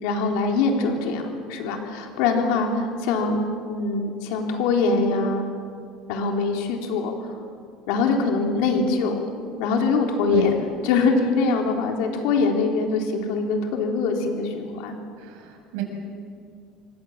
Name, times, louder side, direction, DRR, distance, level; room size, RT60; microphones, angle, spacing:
voice 1, 0.0-5.5 6.1-7.1 7.9-9.2 9.6-15.0, left 4 dB, 70° left, 2 dB, 3.8 m, -23 dB
voice 2, 15.2-15.8, right 9 dB, 80° right, 3 dB, 6.7 m, -31 dB
28.0 x 25.0 x 7.4 m, 2.3 s
cardioid pair, 170°, 0 cm